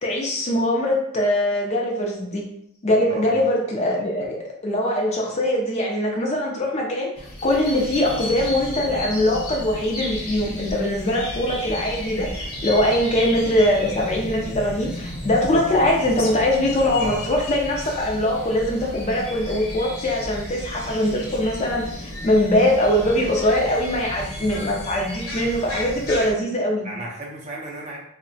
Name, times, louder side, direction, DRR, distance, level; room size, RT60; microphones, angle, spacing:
voice 1, 0.0-2.5 2.8-26.9, left 1 dB, 30° left, -1 dB, 0.4 m, -22 dB
sound 1, 7.2-26.3, left 1 dB, 65° left, 0.9 m, -33 dB
voice 2, 26.8-28.0, right 2 dB, 30° right, -2 dB, 0.5 m, -34 dB
2.7 x 2.1 x 2.6 m, 0.73 s
head